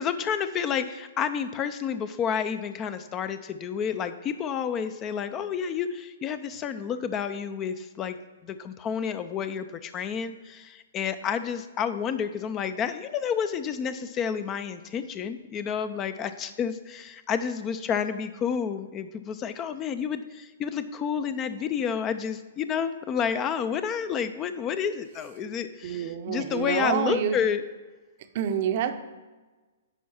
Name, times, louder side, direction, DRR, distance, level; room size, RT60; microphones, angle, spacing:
voice 1, 0.0-8.2 8.4-27.6, left 7 dB, 25° left, 12 dB, 0.4 m, -30 dB
voice 2, 25.8-27.4 28.3-28.9, right 8 dB, 45° right, 8 dB, 0.6 m, -27 dB
9.9 x 4.6 x 4.3 m, 1.2 s
figure-of-eight pair, 120°, 0 cm